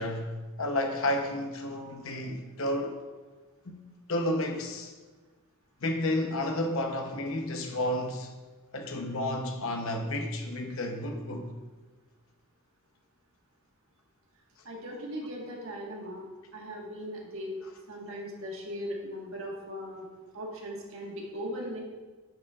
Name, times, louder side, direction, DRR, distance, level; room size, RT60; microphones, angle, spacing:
voice 1, 0.0-3.0 3.6-3.8 4.1-4.9 5.8-8.3 8.7-11.5, left 1 dB, 60° left, 0.8 m, -31 dB
voice 2, 14.6-16.3 16.5-17.6 17.9-20.1 20.3-21.8, equal, 60° right, 1.5 m, -38 dB
9.2 x 7.2 x 2.4 m
head